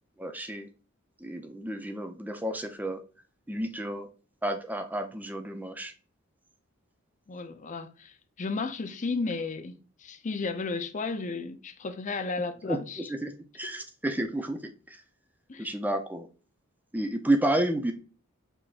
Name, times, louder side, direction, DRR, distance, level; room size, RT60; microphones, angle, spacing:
voice 1, 0.2-0.7 1.2-3.0 3.5-4.1 4.4-5.9 12.7-15.0 15.6-16.3 16.9-17.9, right 1 dB, 10° right, 0.6 m, -31 dB
voice 2, 7.3-13.0 15.5-15.7, left 4 dB, 35° left, 0.5 m, -34 dB
5.2 x 3.5 x 2.5 m
head